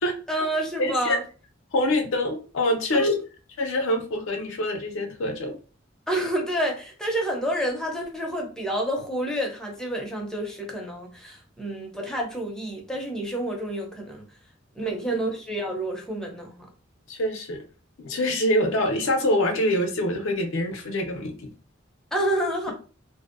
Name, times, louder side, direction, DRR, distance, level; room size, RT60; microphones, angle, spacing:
voice 1, 0.3-1.2 2.9-3.2 6.1-14.2 14.8-16.7 22.1-22.7, equal, 5° left, 0.5 m, -28 dB
voice 2, 0.8-1.2 1.7-3.1 3.6-5.6 14.8-15.2 17.1-17.6 18.0-21.5, left 1 dB, 75° left, 0.5 m, -25 dB
2.5 x 2.0 x 2.4 m
head